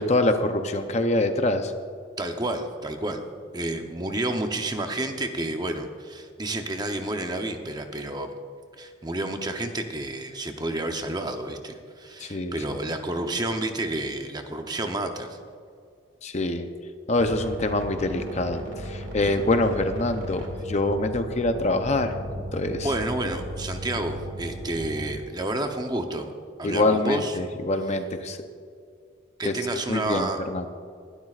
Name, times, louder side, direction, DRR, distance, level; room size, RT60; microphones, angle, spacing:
voice 1, 0.0-1.7 12.2-12.6 16.2-16.7 17.1-22.1 22.5-22.9 26.6-28.4 29.4-29.5 29.9-30.7, left 2 dB, 35° left, 7 dB, 0.6 m, -25 dB
voice 2, 2.2-3.2 3.5-8.3 8.8-15.4 19.2-19.4 22.8-26.3 26.6-27.3 29.4-30.4, right 1 dB, 20° right, 5 dB, 0.7 m, -30 dB
sound 1, 17.2-25.1, right 1 dB, 65° right, 2.3 m, -36 dB
21.5 x 12.0 x 2.4 m, 2.2 s
head